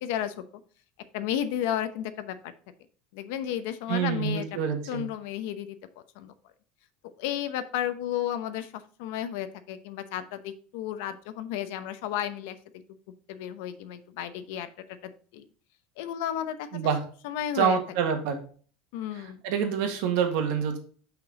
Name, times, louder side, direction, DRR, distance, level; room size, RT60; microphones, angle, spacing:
voice 1, 0.0-0.3 1.1-2.5 3.1-4.4 4.9-5.8 6.2-6.3 7.2-12.6 13.3-14.7 15.0-15.4 16.0-16.7 17.2-17.8 18.9-19.4, left 11 dB, 75° left, 11 dB, 0.8 m, -32 dB
voice 2, 3.9-5.0 16.7-17.0 17.5-18.4 19.2-20.8, right 7 dB, 70° right, 4 dB, 1.7 m, -27 dB
6.0 x 5.8 x 3.7 m, 0.42 s
supercardioid pair, 150°, 0 cm